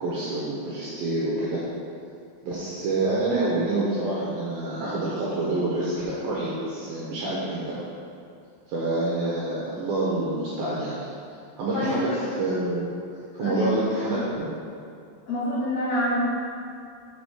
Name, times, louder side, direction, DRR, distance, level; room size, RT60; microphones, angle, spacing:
voice 1, 0.0-1.6 2.4-7.8 8.7-11.0 11.6-12.9 13.3-14.5, right 2 dB, 70° right, -7 dB, 2.5 m, -27 dB
voice 2, 13.4-13.8 15.3-16.2, left 1 dB, 60° left, -11 dB, 1.9 m, -27 dB
6.1 x 6.0 x 4.9 m, 2.4 s
omnidirectional pair, 5.0 m